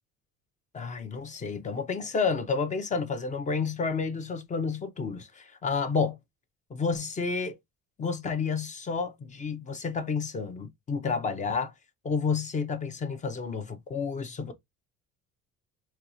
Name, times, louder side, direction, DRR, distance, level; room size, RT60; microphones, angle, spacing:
voice 1, 0.7-6.2 6.7-7.5 8.0-11.7 12.0-14.5, left 5 dB, 25° left, 0.7 m, -30 dB
4.4 x 2.3 x 2.6 m
cardioid pair, 130°, 32 cm